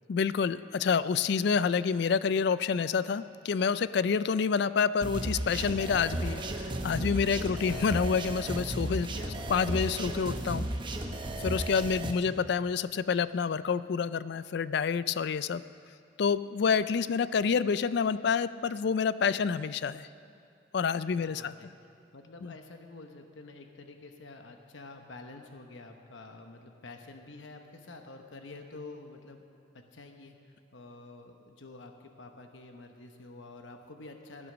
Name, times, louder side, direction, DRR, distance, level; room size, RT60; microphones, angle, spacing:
voice 1, 0.1-6.4 6.8-9.1 9.5-10.7 11.4-15.6 16.2-20.1 20.7-21.5 22.4-22.5, left 6 dB, 60° left, 16 dB, 0.4 m, -28 dB
sound 1, 5.0-12.1, right 1 dB, 25° right, 0.9 m, -34 dB
voice 2, 7.3-8.0 9.2-9.5 21.2-21.7 22.1-29.4 29.7-34.5, left 3 dB, 75° left, 5 dB, 1.0 m, -48 dB
16.5 x 10.0 x 6.2 m, 2.6 s
head